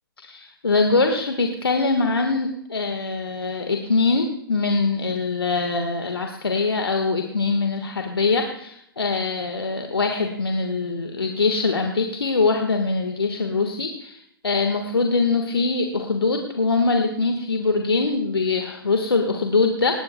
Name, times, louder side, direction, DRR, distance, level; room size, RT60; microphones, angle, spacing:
voice 1, 0.2-14.2 14.4-20.0, left 3 dB, 80° left, 4 dB, 1.4 m, -23 dB
18.5 x 18.0 x 2.2 m, 0.73 s
figure-of-eight pair, 120°, 12 cm